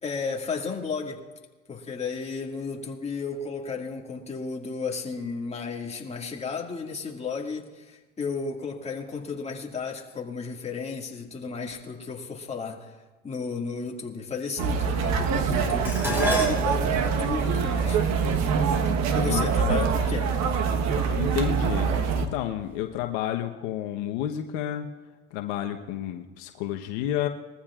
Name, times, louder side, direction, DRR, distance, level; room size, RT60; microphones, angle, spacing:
voice 1, 0.0-1.2 1.7-12.9 13.2-18.0 19.1-20.3, left 5 dB, 15° left, 0 dB, 2.1 m, -33 dB
sound 1, 14.6-22.3, right 6 dB, 45° right, 1.3 m, -24 dB
Dishes pots and pans, 15.8-20.2 21.1-21.5 21.9-22.7 23.0-23.1, left 1 dB, 5° right, 4.8 m, -34 dB
voice 2, 21.2-24.9 25.3-27.3, left 11 dB, 65° left, 4 dB, 1.1 m, -30 dB
21.5 x 14.5 x 2.5 m, 1.3 s
supercardioid pair, 110°, 38 cm